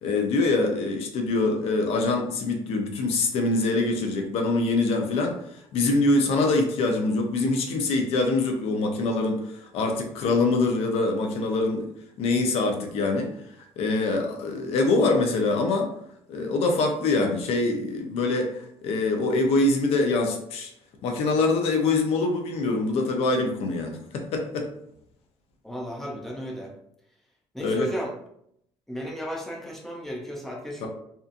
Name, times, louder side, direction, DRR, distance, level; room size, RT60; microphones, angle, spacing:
voice 1, 0.0-5.4 5.7-9.4 9.7-11.9 12.2-13.3 13.8-15.9 16.3-20.7 21.0-24.7 27.6-27.9 30.8-30.9, left 3 dB, 70° left, 3 dB, 0.6 m, -24 dB
voice 2, 25.6-26.7 27.5-28.1 28.9-30.9, equal, 5° left, -2 dB, 0.5 m, -34 dB
2.7 x 2.4 x 2.5 m, 0.72 s
cardioid pair, 155°, 11 cm